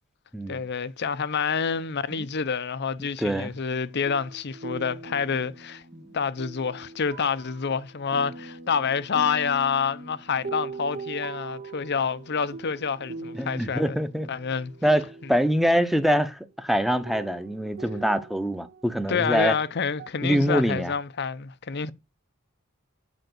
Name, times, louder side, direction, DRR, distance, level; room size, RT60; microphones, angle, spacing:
voice 1, 0.5-5.8 6.1-14.0 14.3-14.7 19.1-21.9, left 6 dB, 50° left, 0.7 m, -28 dB
voice 2, 3.2-3.5 5.9-6.1 13.3-14.3 14.8-19.6 20.2-20.9, equal, ahead, 0.9 m, -24 dB
sound 1, 3.7-15.7 16.6-16.7 17.1-20.1, right 3 dB, 45° right, 0.9 m, -41 dB
9.3 x 5.1 x 7.9 m
head